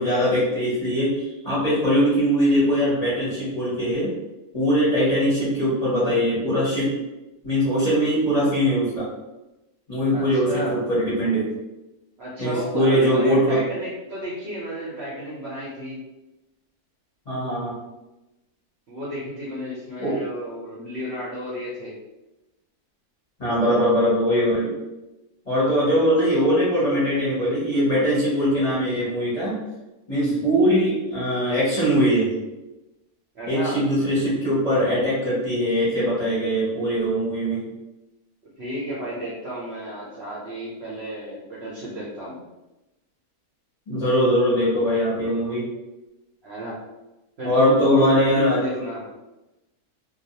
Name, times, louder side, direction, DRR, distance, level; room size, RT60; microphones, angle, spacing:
voice 1, 0.0-4.1 4.5-6.9 7.4-9.1 9.9-11.5 12.4-13.6 17.3-17.8 20.0-20.2 23.4-24.7 25.4-29.6 30.1-32.3 33.5-37.6 43.9-45.6 47.4-48.6, equal, 30° left, -10 dB, 0.8 m, -21 dB
voice 2, 10.1-10.8 12.2-16.0 18.9-21.9 25.7-26.1 30.1-30.4 33.3-33.7 38.6-42.4 46.4-46.8 47.4-49.1, equal, 60° right, -7 dB, 0.7 m, -32 dB
2.4 x 2.2 x 2.8 m, 1.0 s
omnidirectional pair, 1.6 m